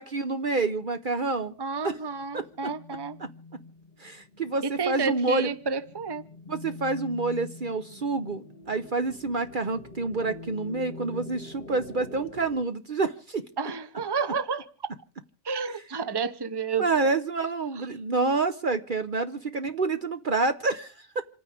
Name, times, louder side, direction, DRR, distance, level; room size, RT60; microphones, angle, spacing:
voice 1, 0.0-1.5 1.8-2.0 2.3-2.7 3.2-3.3 4.0-5.5 6.5-13.4 16.8-21.2, right 3 dB, 45° right, 9 dB, 1.0 m, -28 dB
sound 1, 1.3-12.6, left 3 dB, 45° left, 1.1 m, -45 dB
voice 2, 1.6-3.2 4.6-6.2 13.6-14.6 15.4-17.1 17.7-17.9, right 5 dB, 20° right, 13 dB, 0.9 m, -31 dB
28.0 x 9.6 x 4.9 m, 0.38 s
omnidirectional pair, 1.2 m